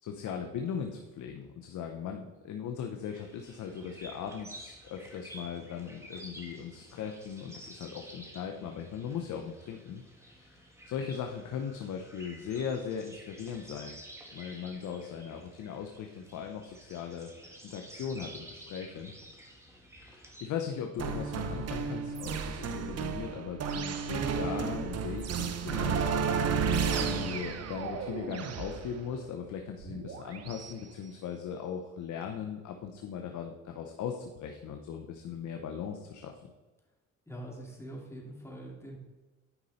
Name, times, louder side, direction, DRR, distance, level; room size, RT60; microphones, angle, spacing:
voice 1, 0.0-14.0 14.3-17.3 17.6-19.1 20.0-26.1 27.0-36.5, left 7 dB, 75° left, 4 dB, 0.8 m, -39 dB
sound 1, 3.0-20.4, right 1 dB, 10° right, 2.0 m, -51 dB
sound 2, 21.0-30.7, right 6 dB, 55° right, 0.8 m, -32 dB
voice 2, 37.3-39.0, right 1 dB, 10° left, -1 dB, 2.6 m, -44 dB
9.7 x 5.5 x 4.2 m, 1.2 s
cardioid pair, 90°, 30 cm